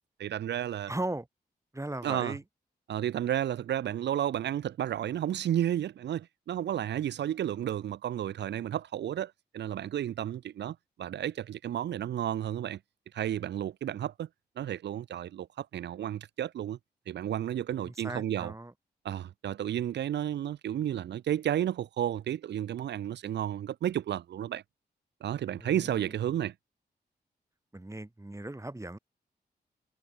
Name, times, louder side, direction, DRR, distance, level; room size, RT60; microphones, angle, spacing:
voice 1, 0.2-0.9 2.0-2.3 2.9-12.8 13.1-14.3 14.6-16.8 17.1-18.5 19.0-24.6 25.2-26.5, right 11 dB, 85° right, 0.9 m, -32 dB
voice 2, 0.9-1.3 1.7-2.4 17.8-18.7 25.5-26.2 27.7-29.0, right 1 dB, 15° right, 6.2 m, -38 dB
cardioid pair, 55°, 18 cm